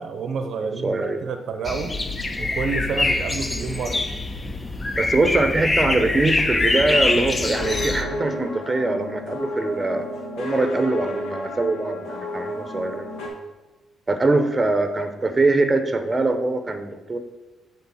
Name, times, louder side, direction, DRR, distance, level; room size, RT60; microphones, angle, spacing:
voice 1, 0.0-1.9 2.4-4.0, right 5 dB, 65° right, 7 dB, 0.7 m, -29 dB
voice 2, 0.6-1.3 5.0-10.1 10.4-13.1 14.1-17.2, right 2 dB, 20° right, 7 dB, 0.8 m, -23 dB
sound 1, 1.6-8.0, left 2 dB, 25° left, 0.6 m, -24 dB
sound 2, 6.9-13.3, left 1 dB, 80° left, 1.7 m, -32 dB
9.3 x 3.9 x 4.2 m, 1.2 s
cardioid pair, 90°, 0 cm